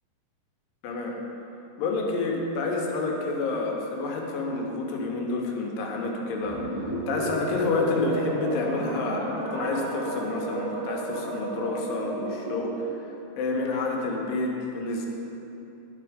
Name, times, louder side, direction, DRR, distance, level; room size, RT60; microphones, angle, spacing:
voice 1, 0.8-1.2 1.8-6.7 7.1-12.9 13.4-15.1, left 3 dB, 85° left, 0 dB, 2.7 m, -29 dB
sound 1, 6.4-12.8, right 2 dB, 45° right, 2.2 m, -32 dB
10.5 x 6.0 x 5.0 m, 2.9 s
omnidirectional pair, 3.9 m